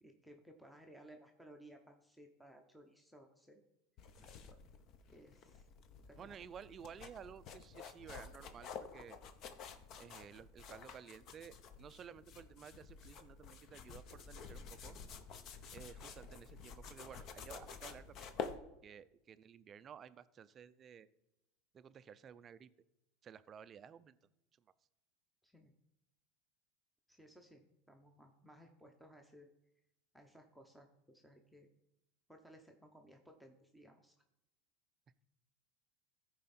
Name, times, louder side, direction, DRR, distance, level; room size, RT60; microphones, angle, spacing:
voice 1, 0.0-3.6 4.5-4.6 5.1-5.7 6.1-6.5 25.4-25.7 27.1-29.5 30.1-31.7 32.3-34.1, equal, ahead, 3 dB, 0.8 m, -60 dB
sound 1, 4.0-18.6, left 6 dB, 40° left, 0.8 m, -50 dB
voice 2, 4.2-4.5 6.2-9.2 10.0-15.0 15.7-18.3 18.8-21.1 21.7-22.7 23.2-24.2, right 8 dB, 30° right, 15 dB, 0.4 m, -54 dB
14.0 x 4.8 x 4.3 m, 0.90 s
supercardioid pair, 140°, 0 cm